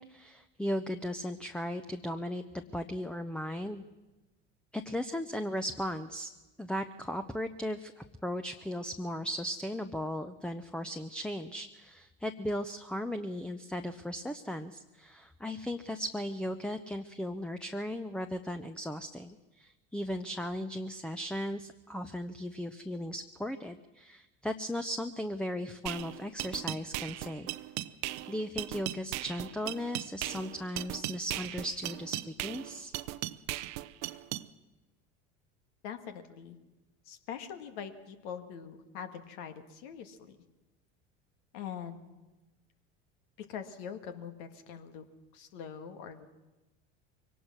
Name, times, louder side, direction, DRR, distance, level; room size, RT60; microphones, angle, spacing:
voice 1, 0.0-3.8 4.7-6.3 6.6-27.5 28.3-32.9, equal, 5° left, 8 dB, 0.8 m, -37 dB
sound 1, 25.9-34.5, right 17 dB, 65° right, 0.8 m, -38 dB
voice 2, 35.8-36.6 37.1-40.4 41.5-42.0 43.4-45.0 45.3-46.3, left 7 dB, 70° left, 8 dB, 2.0 m, -43 dB
23.0 x 18.0 x 6.2 m, 1.1 s
hypercardioid pair, 80°, 37 cm